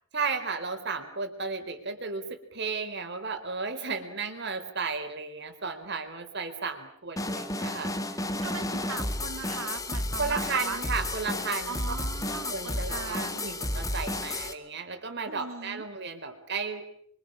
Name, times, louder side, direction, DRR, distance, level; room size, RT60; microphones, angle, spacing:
voice 1, 0.1-8.9 10.2-11.8 12.3-16.8, right 4 dB, 55° right, 6 dB, 3.8 m, -34 dB
sound 1, 7.2-14.5, left 1 dB, 15° left, 2.1 m, -32 dB
voice 2, 8.4-10.8 11.7-13.6 15.3-15.8, right 5 dB, 80° right, 9 dB, 1.8 m, -39 dB
27.5 x 24.5 x 8.7 m, 0.64 s
head